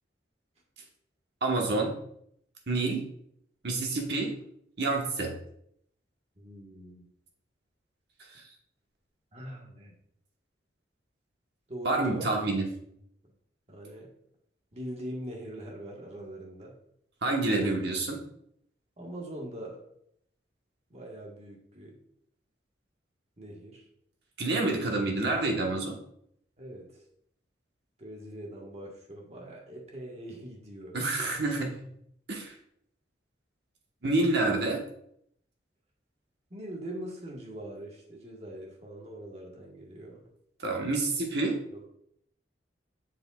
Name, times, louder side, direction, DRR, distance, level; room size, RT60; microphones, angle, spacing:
voice 1, 1.4-1.9 2.7-3.1 3.6-4.4 4.8-5.4 11.8-12.6 17.2-18.2 24.4-26.0 30.9-31.7 32.3-32.5 34.0-34.8 40.6-41.6, right 2 dB, 60° right, 1 dB, 1.2 m, -28 dB
voice 2, 6.4-7.1 9.3-10.0 11.7-12.6 13.7-14.1 14.7-16.8 17.5-17.7 19.0-19.8 20.9-22.0 23.4-23.8 26.6-27.0 28.0-31.0 34.4-34.6 36.5-40.3 41.7-41.9, right 1 dB, 35° right, -1 dB, 1.4 m, -42 dB
7.4 x 6.3 x 2.4 m, 0.71 s
head